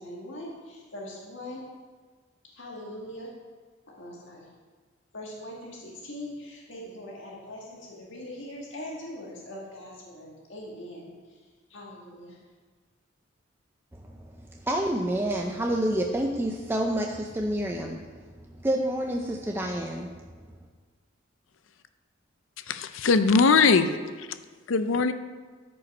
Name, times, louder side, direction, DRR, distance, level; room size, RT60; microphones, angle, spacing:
voice 1, 0.0-1.6 2.5-3.3 4.0-4.5 5.1-11.4 11.7-12.4, left 1 dB, 70° left, -3 dB, 1.8 m, -41 dB
voice 2, 13.9-18.1 18.5-20.1, right 1 dB, 10° right, 1 dB, 0.5 m, -28 dB
voice 3, 22.7-23.9 24.7-25.1, left 4 dB, 90° left, 11 dB, 0.6 m, -20 dB
12.5 x 5.5 x 5.4 m, 1.5 s
head